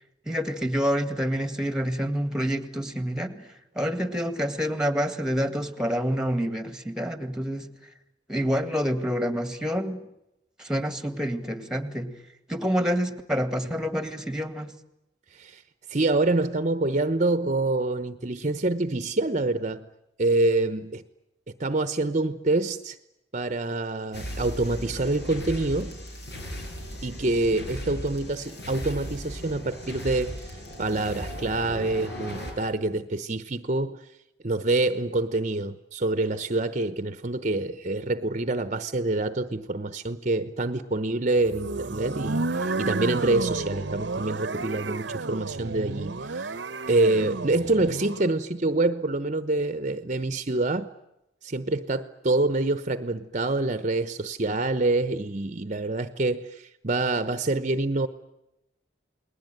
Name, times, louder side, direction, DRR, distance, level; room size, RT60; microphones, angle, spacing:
voice 1, 0.3-3.5 3.8-7.7 8.3-10.1 10.6-12.2 12.5-14.7, equal, 5° right, 2.0 m, -27 dB
voice 2, 15.9-19.9 20.2-21.0 21.5-23.0 23.3-26.0 27.0-34.0 34.4-46.5 46.9-50.9 51.4-58.1, right 2 dB, 45° right, 1.0 m, -26 dB
sound 1, 24.1-32.5, equal, 65° left, 7.4 m, -37 dB
sound 2, 41.4-48.3, right 3 dB, 80° right, 0.9 m, -31 dB
29.0 x 20.5 x 9.2 m
head